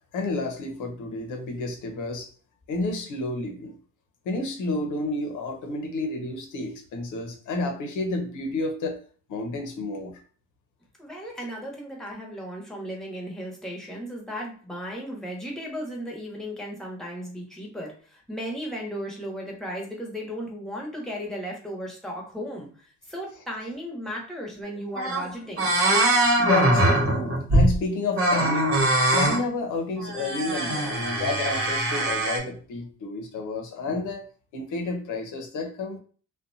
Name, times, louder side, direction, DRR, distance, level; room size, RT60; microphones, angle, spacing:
voice 1, 0.1-2.3 2.7-3.7 4.2-9.0 9.3-10.2 26.4-28.8 29.1-34.3 34.5-36.0, left 3 dB, 80° left, 4 dB, 0.7 m, -30 dB
voice 2, 11.0-25.7, equal, ahead, -2 dB, 1.0 m, -35 dB
sound 1, 24.6-24.7 24.9-25.3 25.6-27.8 28.1-29.4 30.0-32.4, right 1 dB, 45° right, 1.0 m, -22 dB
2.5 x 2.2 x 2.6 m, 0.41 s
cardioid pair, 90°, 30 cm